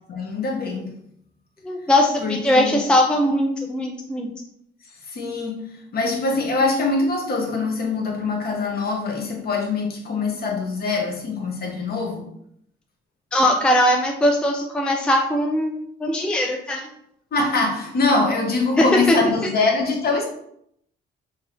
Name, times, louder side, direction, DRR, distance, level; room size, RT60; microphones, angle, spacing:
voice 1, 0.1-0.9 2.2-2.8 5.0-12.3 17.3-20.2, left 3 dB, 50° left, 2 dB, 0.8 m, -23 dB
voice 2, 1.6-4.3 13.3-16.9 18.8-19.2, left 1 dB, 5° left, 2 dB, 0.3 m, -20 dB
3.0 x 2.8 x 2.4 m, 0.72 s
cardioid pair, 90°, 20 cm